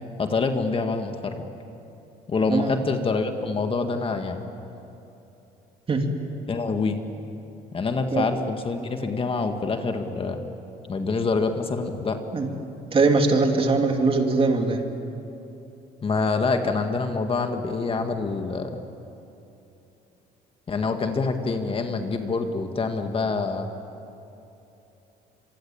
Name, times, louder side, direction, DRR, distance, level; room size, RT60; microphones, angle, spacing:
voice 1, 0.2-1.5 2.3-4.5 6.5-7.0 7.7-10.4 10.9-12.2 16.0-18.7 20.7-23.7, left 4 dB, 30° left, 6 dB, 1.9 m, -26 dB
voice 2, 2.5-2.8 5.9-6.1 8.1-8.2 12.3-12.5 12.9-14.8, right 3 dB, 35° right, 4 dB, 3.0 m, -21 dB
26.5 x 24.0 x 8.8 m, 2.9 s
cardioid pair, 110°, 17 cm